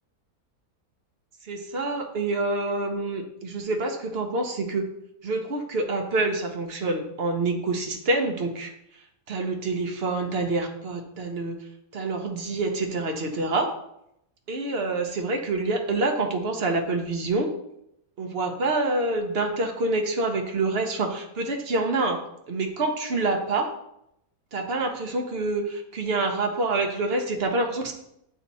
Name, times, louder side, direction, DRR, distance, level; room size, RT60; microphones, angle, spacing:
voice 1, 1.4-4.9 5.2-8.7 9.3-11.6 11.9-13.7 14.5-17.5 18.2-22.2 22.5-23.7 24.5-27.9, right 2 dB, 50° right, 3 dB, 0.9 m, -27 dB
8.0 x 2.9 x 4.1 m, 0.78 s
omnidirectional pair, 1.6 m